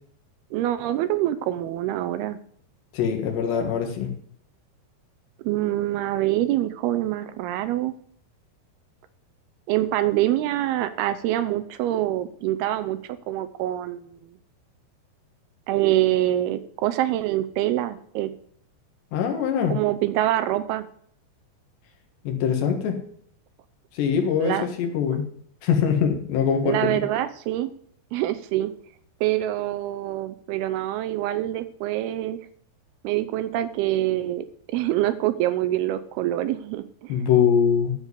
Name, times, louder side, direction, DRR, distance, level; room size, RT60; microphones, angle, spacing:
voice 1, 0.5-2.4 5.4-7.9 9.7-13.0 13.3-14.2 15.7-18.3 19.7-20.9 24.4-24.7 26.6-27.7 28.1-28.7 29.2-32.4 33.0-37.1, right 14 dB, 80° right, 12 dB, 2.4 m, -25 dB
voice 2, 2.9-4.1 19.1-19.8 22.3-23.0 24.0-25.3 25.6-27.0 37.1-37.9, left 7 dB, 85° left, 4 dB, 3.8 m, -23 dB
13.0 x 5.0 x 8.1 m, 0.62 s
omnidirectional pair, 4.8 m